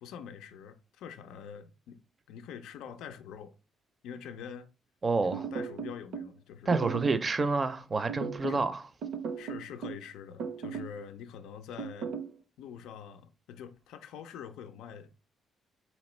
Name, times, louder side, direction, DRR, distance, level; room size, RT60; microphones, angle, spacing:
voice 1, 0.0-2.0 2.3-3.5 4.0-4.7 5.2-6.9 8.5-8.6 9.4-12.1 12.6-15.2, left 8 dB, 90° left, 0.4 m, -45 dB
voice 2, 5.0-5.4 6.7-8.8, right 3 dB, 35° right, 0.4 m, -28 dB
sound 1, 5.3-6.3 6.7-7.3 8.1-8.7 9.0-10.0 10.4-11.0 11.8-12.3, right 6 dB, 80° right, 0.6 m, -36 dB
4.3 x 2.9 x 3.1 m
cardioid pair, 90°, 0 cm